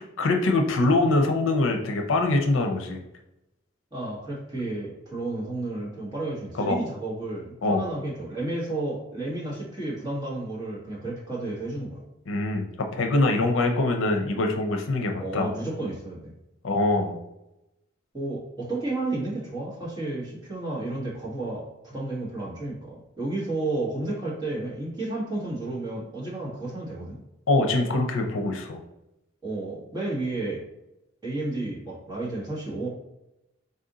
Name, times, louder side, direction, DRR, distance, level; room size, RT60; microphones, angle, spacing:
voice 1, 0.2-3.0 6.6-6.8 7.6-7.8 12.3-12.7 13.0-15.5 16.6-17.2 27.5-28.8, left 2 dB, 80° left, 4 dB, 0.6 m, -23 dB
voice 2, 3.9-12.0 15.2-16.3 18.1-27.2 29.4-30.6 31.2-32.9, right 2 dB, 20° right, -6 dB, 1.3 m, -32 dB
4.1 x 2.5 x 3.9 m, 0.90 s
head